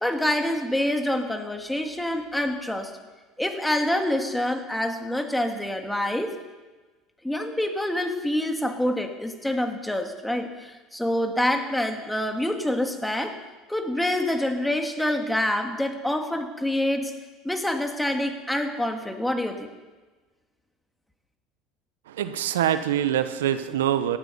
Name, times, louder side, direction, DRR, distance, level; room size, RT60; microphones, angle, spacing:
voice 1, 0.0-2.9 3.4-6.4 7.2-13.4 13.7-17.1 17.4-19.7, left 1 dB, 5° left, 5 dB, 2.1 m, -26 dB
voice 2, 22.1-24.2, right 11 dB, 90° right, 12 dB, 0.8 m, -24 dB
18.0 x 13.0 x 5.6 m, 1.3 s
supercardioid pair, 90°, 0 cm